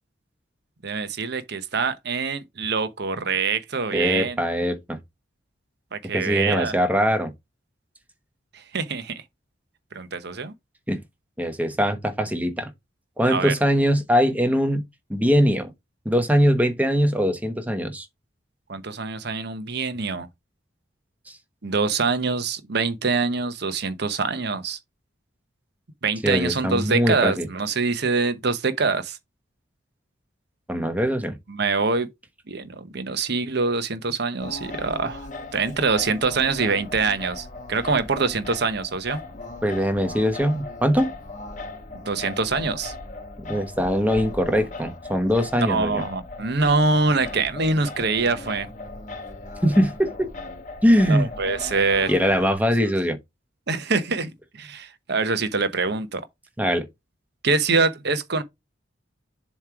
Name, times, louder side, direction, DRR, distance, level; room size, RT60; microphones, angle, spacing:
voice 1, 0.8-4.4 5.9-6.7 8.5-9.2 9.9-10.5 13.3-13.5 18.7-20.3 21.6-24.8 26.0-29.2 31.5-32.1 32.5-39.2 42.0-42.9 45.7-48.7 51.1-52.1 53.7-56.2 57.4-58.4, right 4 dB, 60° right, 1.0 m, -24 dB
voice 2, 3.9-5.0 6.1-7.3 10.9-11.0 11.4-12.7 13.2-14.8 15.1-15.7 16.0-18.1 26.2-27.5 30.7-31.4 39.6-41.1 43.5-46.0 49.6-50.3 50.8-51.3 52.1-53.2 56.6-56.8, equal, 10° right, 1.0 m, -21 dB
Singing, 34.4-52.5, left 2 dB, 40° left, 1.1 m, -38 dB
7.3 x 3.1 x 4.7 m
head